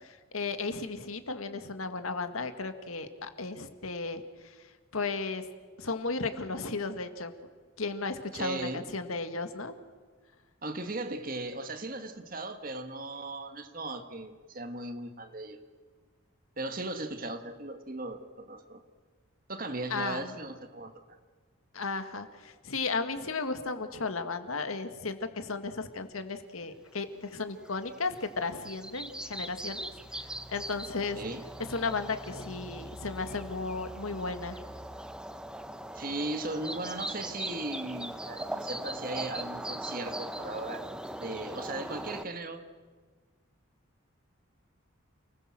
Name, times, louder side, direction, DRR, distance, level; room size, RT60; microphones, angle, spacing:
voice 1, 0.0-4.6 4.9-5.5 5.8-7.3 7.8-9.7 19.9-20.3 21.7-29.9 30.2-31.2 31.6-34.6, left 3 dB, 85° left, 8 dB, 1.9 m, -35 dB
voice 2, 8.3-8.8 10.6-15.6 16.6-18.8 19.5-21.2 31.2-31.4 35.9-40.9 41.2-42.6, right 2 dB, 40° right, 8 dB, 1.8 m, -37 dB
sound 1, 27.6-42.2, right 1 dB, 5° right, 0.8 m, -40 dB
29.0 x 20.0 x 7.6 m, 1.5 s
head